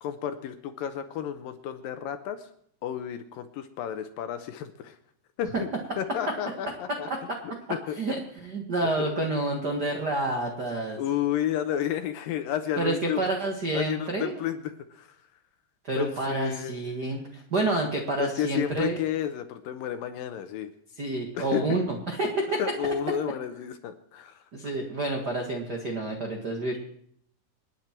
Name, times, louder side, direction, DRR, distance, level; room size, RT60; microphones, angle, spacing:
voice 1, 0.0-2.5 2.8-5.0 5.4-5.7 6.0-7.1 7.7-8.0 8.8-9.1 11.0-13.2 13.7-15.2 16.0-16.8 18.2-20.7 21.4-21.8 22.6-24.4, left 10 dB, 75° left, 9 dB, 2.3 m, -31 dB
voice 2, 8.4-11.0 12.8-14.4 15.8-19.0 21.0-22.6 24.5-26.8, right 2 dB, 60° right, 2 dB, 1.0 m, -29 dB
27.5 x 9.6 x 4.4 m, 0.67 s
omnidirectional pair, 4.6 m